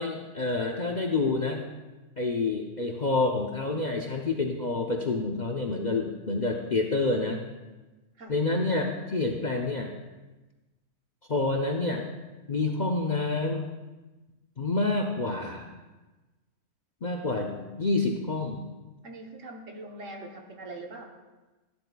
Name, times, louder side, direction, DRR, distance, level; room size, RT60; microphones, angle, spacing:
voice 1, 0.0-1.6 2.2-7.4 8.3-9.9 11.3-12.0 12.5-13.6 14.6-15.7 17.0-18.7, left 3 dB, 45° left, 2 dB, 0.6 m, -28 dB
voice 2, 19.0-21.1, right 2 dB, 60° right, 2 dB, 1.3 m, -42 dB
12.5 x 12.0 x 2.3 m, 1.2 s
omnidirectional pair, 1.6 m